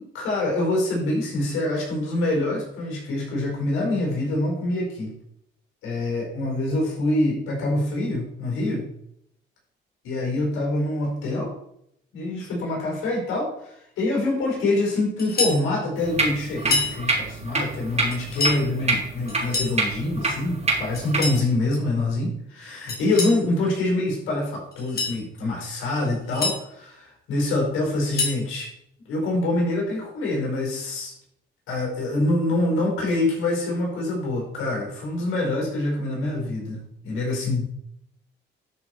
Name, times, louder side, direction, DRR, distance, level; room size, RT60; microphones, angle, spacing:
voice 1, 0.0-5.1 5.8-8.8 10.0-11.5 12.1-28.7 29.0-31.1 31.7-37.7, left 2 dB, 90° left, -1 dB, 5.0 m, -25 dB
sound 1, 15.2-15.6 16.6-17.0 18.1-18.6 19.3-19.8 20.9-21.4 22.9-23.4 24.7-25.2 26.0-26.6 27.8-28.4, left 3 dB, 50° left, 3.2 m, -27 dB
sound 2, 16.0-21.4, right 3 dB, 35° right, 3.2 m, -27 dB
12.5 x 6.2 x 4.9 m, 0.75 s
cardioid pair, 90°, 20 cm